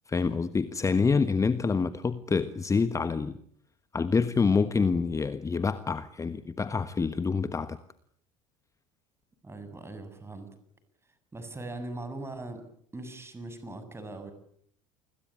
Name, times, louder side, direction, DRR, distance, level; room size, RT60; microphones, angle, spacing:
voice 1, 0.1-3.4 3.9-7.8, left 4 dB, 20° left, 1.3 m, -27 dB
voice 2, 9.4-10.5 11.3-12.6 12.9-14.3, right 2 dB, 15° right, 7.5 m, -40 dB
29.5 x 21.5 x 8.9 m
figure-of-eight pair, 70°, 17 cm